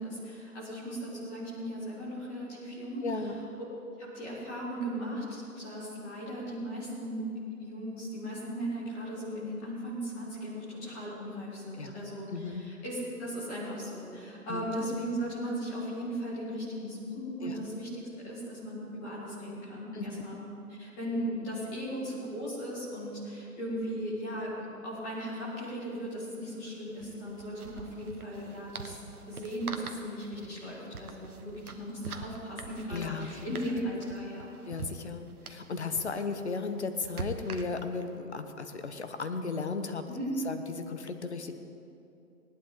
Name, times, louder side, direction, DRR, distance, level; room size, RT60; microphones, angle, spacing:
voice 1, 0.0-3.3 4.0-7.3 7.6-20.5 20.8-24.5 24.8-29.0 29.3-34.5 40.1-40.4, equal, 10° left, -9 dB, 1.7 m, -37 dB
voice 2, 3.0-3.4 11.8-12.0 12.3-12.6 14.5-14.7 17.4-17.6 19.9-20.2 32.9-33.6 34.7-40.0 40.4-41.5, left 4 dB, 45° left, 9 dB, 1.0 m, -35 dB
sound 1, 24.9-25.0 25.3-25.4 26.9-38.1, right 4 dB, 70° right, 1.3 m, -45 dB
19.5 x 11.5 x 3.8 m, 2.8 s
hypercardioid pair, 175°, 46 cm